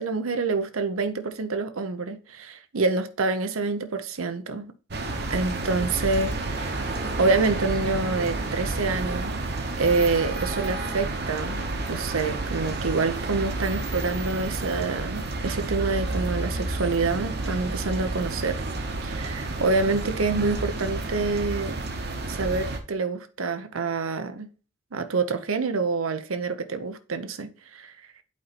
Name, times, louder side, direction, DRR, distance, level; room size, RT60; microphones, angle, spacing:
voice 1, 0.0-4.7 5.3-6.8 7.2-9.4 9.8-18.6 19.0-21.8 22.3-24.5 24.9-27.9, right 3 dB, 85° right, 0.8 m, -27 dB
sound 1, 4.9-22.8, right 2 dB, 50° right, 1.0 m, -30 dB
8.3 x 4.3 x 4.2 m
head